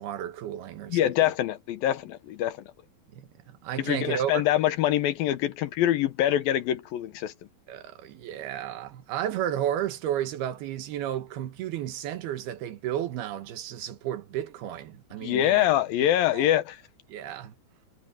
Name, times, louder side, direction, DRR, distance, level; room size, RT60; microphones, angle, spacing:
voice 1, 0.0-1.3 3.1-4.5 7.7-15.7 16.3-16.5 17.1-17.5, right 11 dB, 80° right, 3.3 m, -33 dB
voice 2, 0.9-2.6 3.8-7.3 15.2-16.8, left 12 dB, 75° left, 2.7 m, -24 dB
omnidirectional pair, 4.5 m